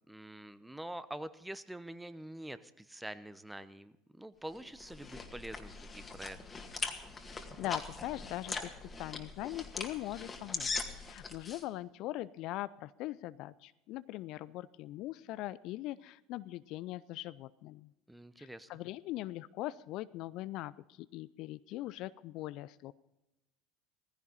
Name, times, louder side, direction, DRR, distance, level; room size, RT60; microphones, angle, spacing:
voice 1, 0.1-6.4 18.1-18.7, right 1 dB, 5° right, 14 dB, 0.9 m, -46 dB
sound 1, 4.5-11.6, left 4 dB, 25° left, 2.1 m, -41 dB
voice 2, 7.6-8.7 9.0-10.7 11.1-17.9 18.4-22.9, left 16 dB, 55° left, 17 dB, 0.4 m, -41 dB
17.0 x 15.5 x 4.0 m, 0.91 s
figure-of-eight pair, 70°, 0 cm